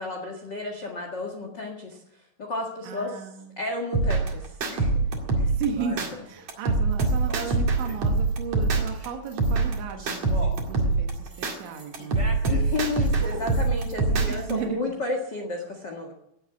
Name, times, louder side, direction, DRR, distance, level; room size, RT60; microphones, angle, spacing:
voice 1, 0.0-2.0 2.4-3.1 3.6-4.9 5.4-5.5 12.5-16.1, left 2 dB, 70° left, 2 dB, 1.0 m, -32 dB
voice 2, 2.8-3.6 5.5-12.7 14.3-14.8, right 6 dB, 85° right, 3 dB, 3.9 m, -35 dB
sound 1, 3.9-6.1 6.5-9.1 9.4-11.5 11.9-14.5, right 3 dB, 45° right, 2.5 m, -24 dB
sound 2, 5.1-5.2 5.7-6.4 6.9-8.3 8.6-14.8, right 1 dB, 20° right, 2.6 m, -43 dB
18.0 x 8.2 x 8.3 m, 0.82 s
omnidirectional pair, 5.2 m